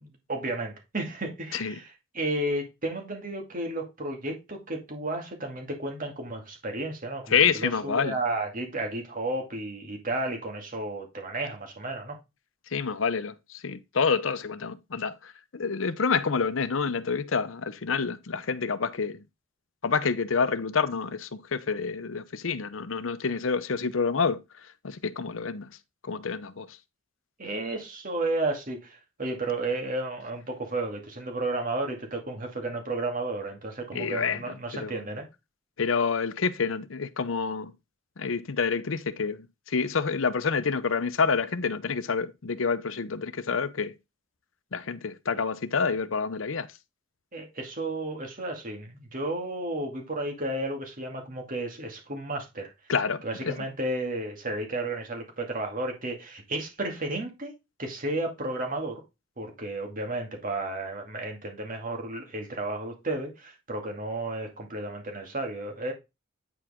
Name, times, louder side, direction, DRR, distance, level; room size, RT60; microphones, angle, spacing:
voice 1, 0.0-12.2 27.4-35.3 47.3-52.7 53.2-57.5 57.8-59.0 59.4-65.9, right 2 dB, 45° right, 2.4 m, -33 dB
voice 2, 7.3-8.2 12.7-19.2 19.8-25.8 26.0-26.8 33.9-34.9 35.8-37.7 38.2-43.9 44.7-46.7 52.9-53.5, left 5 dB, 80° left, 0.7 m, -28 dB
9.2 x 4.9 x 3.7 m
head